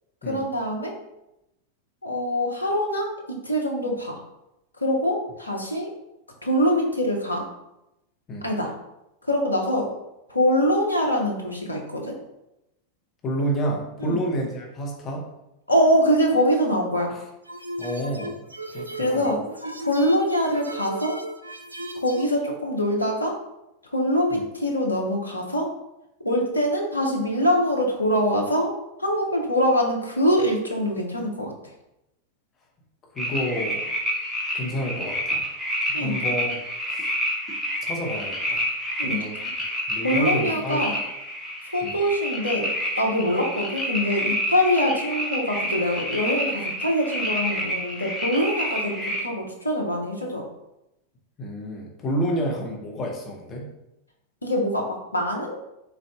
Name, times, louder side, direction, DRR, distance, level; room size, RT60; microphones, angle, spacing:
voice 1, 0.3-0.9 2.0-4.2 4.8-5.9 6.4-7.5 8.4-8.7 9.2-9.9 10.3-12.2 14.0-14.2 15.7-17.1 18.7-19.4 19.8-21.2 21.9-23.4 23.9-25.7 26.2-28.7 29.0-31.5 35.9-36.2 39.0-39.3 39.7-41.0 41.7-42.7 43.0-50.4 54.4-55.6, equal, 80° left, 0 dB, 0.7 m, -24 dB
voice 2, 13.2-15.2 17.1-17.2 17.8-18.4 18.7-19.2 24.3-24.4 33.1-33.8 34.5-35.4 36.0-36.6 36.9-37.1 37.8-38.6 39.0-39.3 39.9-40.9 41.8-42.0 51.4-53.7, equal, 25° left, -1 dB, 0.8 m, -29 dB
sound 1, 17.5-22.4, right 1 dB, 80° right, 0.3 m, -36 dB
sound 2, 33.2-49.2, equal, ahead, 0.9 m, -28 dB
3.9 x 2.4 x 3.4 m, 0.89 s
figure-of-eight pair, 90°, 0 cm